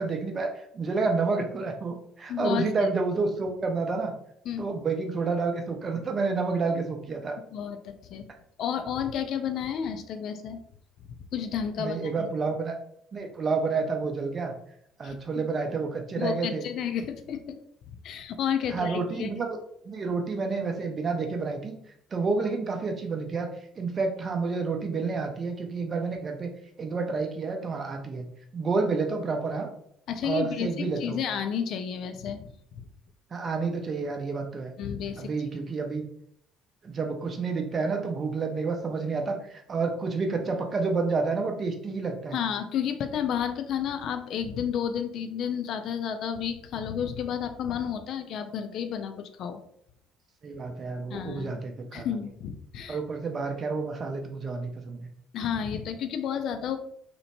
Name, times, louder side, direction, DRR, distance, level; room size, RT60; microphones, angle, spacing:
voice 1, 0.0-4.1 4.6-7.4 11.8-12.7 13.1-14.5 15.0-16.7 18.7-19.5 19.8-21.8 22.1-23.5 23.7-26.5 26.8-29.7 30.2-31.2 33.3-34.7 35.2-36.0 36.8-42.4 50.4-52.0 52.9-55.1, right 4 dB, 35° right, 4 dB, 0.5 m, -29 dB
voice 2, 2.3-2.7 4.5-4.6 7.5-8.3 8.6-10.6 11.3-12.3 15.0-15.2 16.2-17.6 18.0-19.3 30.1-32.5 32.8-32.9 34.8-35.3 42.3-49.6 51.1-51.6 51.9-53.0 55.3-56.8, left 8 dB, 55° left, 7 dB, 0.3 m, -31 dB
2.8 x 2.1 x 2.9 m, 0.69 s
figure-of-eight pair, 55°, 0 cm